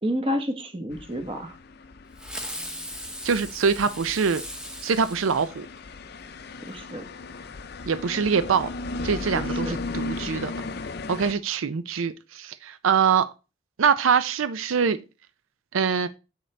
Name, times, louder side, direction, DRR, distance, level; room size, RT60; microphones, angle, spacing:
voice 1, 0.0-1.6 6.7-7.0 9.3-9.8, equal, 25° right, 1.1 m, -30 dB
sound 1, 0.9-11.3, left 3 dB, 50° left, 0.5 m, -36 dB
Fireworks, 2.2-6.1, equal, 5° right, 0.9 m, -38 dB
voice 2, 3.2-4.4 4.8-5.7 7.9-8.7 9.0-10.5 11.1-13.3 13.8-15.0 15.7-16.1, right 6 dB, 90° right, 0.5 m, -24 dB
7.9 x 6.5 x 3.3 m
head